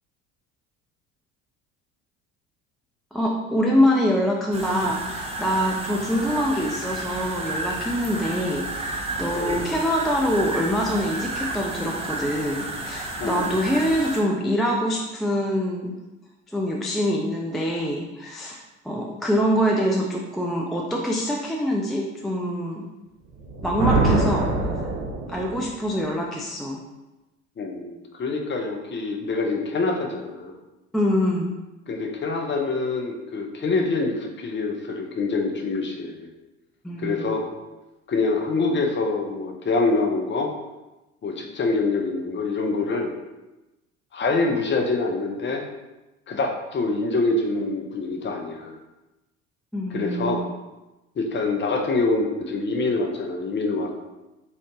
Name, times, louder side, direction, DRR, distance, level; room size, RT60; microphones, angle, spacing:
voice 1, 3.1-15.9 16.5-22.8 23.6-24.5 25.3-26.8 30.9-31.5 36.8-37.3 49.7-50.5, equal, ahead, -2 dB, 0.4 m, -25 dB
sound 1, 4.5-14.2, right 2 dB, 15° right, 0.9 m, -32 dB
voice 2, 9.3-9.7 13.2-13.5 27.6-30.6 31.9-36.3 37.0-37.5 38.1-40.5 41.2-43.2 44.1-45.6 46.3-48.8 49.9-50.5 51.2-53.9, left 3 dB, 30° left, 2 dB, 0.7 m, -25 dB
Thunder, 23.3-25.7, right 3 dB, 40° right, 0.9 m, -24 dB
3.8 x 3.1 x 2.9 m, 1.0 s
hypercardioid pair, 60°, 40 cm